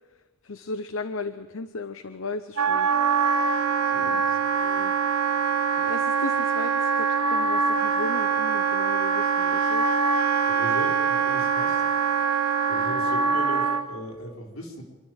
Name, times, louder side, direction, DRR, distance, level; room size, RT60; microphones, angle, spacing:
voice 1, 0.4-2.9 3.9-4.9 5.8-9.9 10.8-10.9 11.4-11.5, left 3 dB, 70° left, 10 dB, 0.8 m, -36 dB
Wind instrument woodwind instrument, 2.6-13.9, right 5 dB, 85° right, 1.3 m, -23 dB
voice 2, 3.9-4.4 10.5-11.8 12.7-14.8, equal, 85° left, 0 dB, 4.8 m, -38 dB
26.5 x 12.0 x 7.9 m, 1.3 s
head